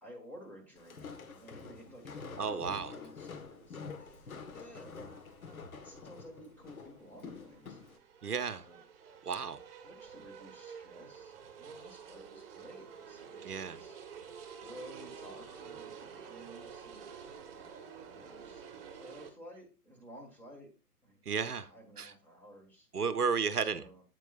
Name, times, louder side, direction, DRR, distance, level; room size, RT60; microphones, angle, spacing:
voice 1, 0.0-5.4 5.8-7.8 8.5-8.8 9.8-17.1 17.7-21.2 21.6-22.9 23.5-24.0, equal, 5° left, -1 dB, 1.6 m, -54 dB
Walk footsteps, 0.8-8.0, left 5 dB, 60° left, 1.5 m, -47 dB
voice 2, 2.4-2.9 8.2-8.7 9.2-9.6 13.4-13.8 21.3-21.7 22.0-22.1 22.9-23.8, right 5 dB, 70° right, 13 dB, 0.8 m, -33 dB
sound 1, 3.4-19.3, right 6 dB, 35° right, 1.5 m, -50 dB
8.9 x 8.3 x 2.4 m, 0.30 s
figure-of-eight pair, 120°, 47 cm